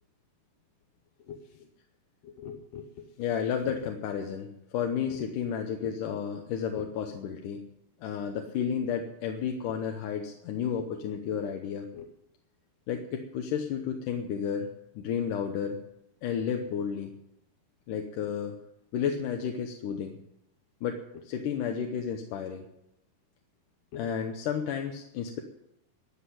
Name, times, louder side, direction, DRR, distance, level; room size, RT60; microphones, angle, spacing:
voice 1, 1.3-1.7 2.2-7.6 8.0-12.1 12.9-14.7 15.0-15.8 16.2-17.1 17.9-18.6 18.9-20.2 20.8-22.6 23.9-25.4, left 7 dB, 70° left, 3 dB, 2.3 m, -32 dB
13.0 x 7.7 x 10.0 m, 0.82 s
omnidirectional pair, 4.3 m